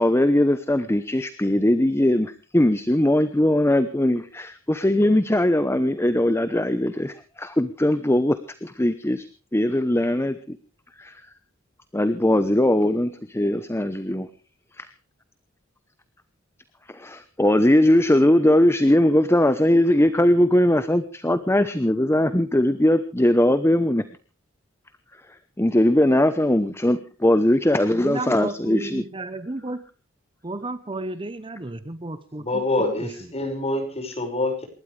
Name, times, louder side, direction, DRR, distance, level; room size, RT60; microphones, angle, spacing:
voice 1, 0.0-8.4 8.6-9.2 9.5-10.6 11.0-11.2 11.9-14.3 14.8-14.9 16.9-24.0 25.6-29.0, left 1 dB, 15° left, 11 dB, 0.9 m, -20 dB
voice 2, 27.8-29.8 30.4-32.4 32.8-33.1, right 2 dB, 25° right, 13 dB, 1.0 m, -32 dB
voice 3, 32.4-34.6, left 2 dB, 30° left, 3 dB, 5.8 m, -26 dB
28.0 x 12.5 x 3.4 m, 0.37 s
head